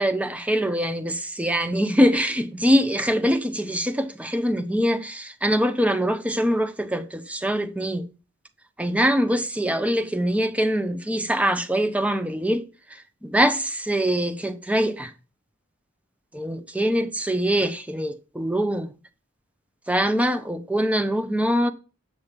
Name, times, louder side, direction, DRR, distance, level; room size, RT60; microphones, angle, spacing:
voice 1, 0.0-8.1 8.8-12.6 12.9-15.1 16.3-18.9 19.9-21.7, equal, 5° right, 0.8 m, -23 dB
7.9 x 5.2 x 7.3 m
head